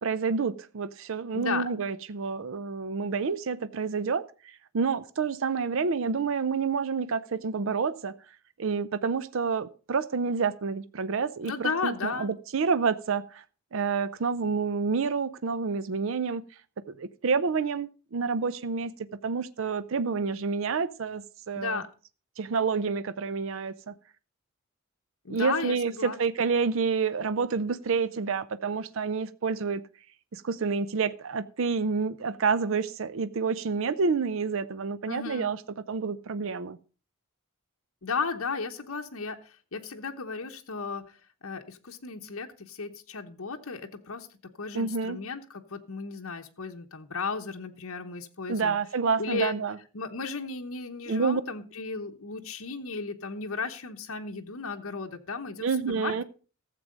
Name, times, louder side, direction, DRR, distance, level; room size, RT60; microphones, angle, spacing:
voice 1, 0.0-8.1 8.6-13.4 13.7-16.4 16.9-18.9 19.2-21.8 22.4-23.9 25.3-29.8 30.3-35.6 35.9-36.8 44.7-45.2 48.5-49.8 51.1-51.4 55.6-56.2, right 5 dB, 65° right, 15 dB, 0.5 m, -28 dB
voice 2, 11.4-12.3 21.5-21.9 25.2-26.2 35.1-35.5 38.0-41.2 41.4-44.3 44.6-48.8 49.2-49.5 49.9-56.2, left 4 dB, 70° left, 3 dB, 1.0 m, -34 dB
14.0 x 7.6 x 5.1 m, 0.36 s
head